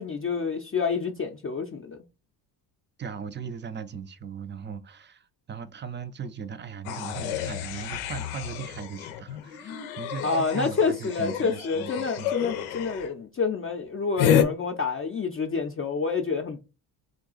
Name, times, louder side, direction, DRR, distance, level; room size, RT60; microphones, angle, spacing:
voice 1, 0.0-2.0 10.2-16.6, left 5 dB, 25° left, 0.5 m, -28 dB
voice 2, 3.0-12.4, right 6 dB, 25° right, 0.5 m, -38 dB
sound 1, 6.8-13.1 14.2-14.4, left 9 dB, 90° left, 0.6 m, -29 dB
3.8 x 2.3 x 3.8 m
supercardioid pair, 60°, 48 cm